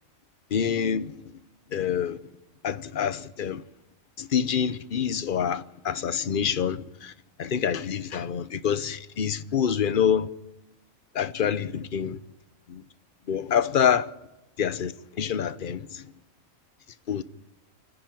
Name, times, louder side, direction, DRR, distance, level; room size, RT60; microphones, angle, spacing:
voice 1, 0.5-1.1 1.7-2.2 2.6-3.6 4.2-7.1 7.4-10.3 11.1-12.2 12.7-12.8 13.3-14.1 14.6-16.0 17.1-17.2, left 8 dB, 45° left, 0.9 m, -26 dB
29.0 x 10.5 x 9.2 m
omnidirectional pair, 1.4 m